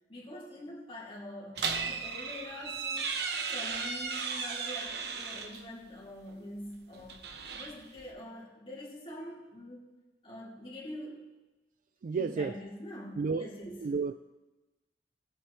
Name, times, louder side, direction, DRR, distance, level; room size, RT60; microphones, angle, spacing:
voice 1, 0.1-3.2 3.5-7.2 7.5-9.8 10.2-11.3 12.1-13.9, left 1 dB, 30° left, -5 dB, 2.8 m, -45 dB
sound 1, 1.6-5.6 6.9-8.1, right 5 dB, 65° right, 1.1 m, -35 dB
voice 2, 12.0-12.6 13.1-14.1, right 4 dB, 50° right, 10 dB, 0.3 m, -32 dB
18.5 x 8.2 x 3.2 m, 1.1 s
head